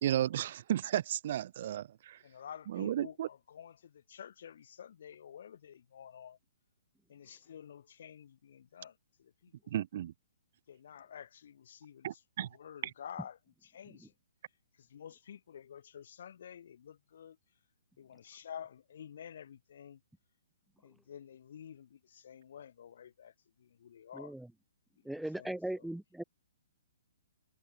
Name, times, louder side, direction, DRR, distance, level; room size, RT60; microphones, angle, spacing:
voice 1, 0.0-2.2 2.7-3.3 9.7-10.1 12.0-12.5, right 11 dB, 50° right, 1.7 m, -33 dB
voice 2, 2.2-6.4 7.1-9.5 10.7-14.1 14.8-17.4 18.0-20.0 20.8-23.3 23.6-24.4 25.0-25.9, left 8 dB, 60° left, 4.0 m, -50 dB
voice 3, 24.1-24.5 25.0-26.2, right 1 dB, ahead, 1.0 m, -38 dB
hypercardioid pair, 145°, 0 cm